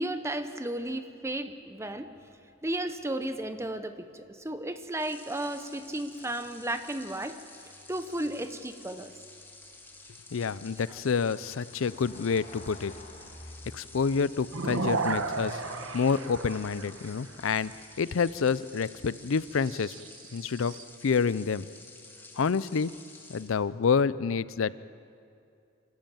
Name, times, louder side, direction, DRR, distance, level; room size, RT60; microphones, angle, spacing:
voice 1, 0.0-2.1 2.6-7.4 7.9-9.1 10.9-11.0, right 1 dB, 15° right, 9 dB, 0.8 m, -34 dB
sound 1, 1.4-19.6, left 1 dB, 35° left, 2.0 m, -55 dB
sound 2, 4.9-23.5, left 2 dB, 10° left, 2.0 m, -51 dB
voice 2, 10.3-12.9 13.7-15.6 15.9-17.7 18.0-19.9 20.3-20.7 21.0-21.7 22.4-22.9 23.3-24.8, left 5 dB, 80° left, 18 dB, 0.5 m, -28 dB
sound 3, 14.5-17.2 19.6-20.8, right 3 dB, 85° right, 1.2 m, -33 dB
25.5 x 14.5 x 8.9 m, 2.6 s
head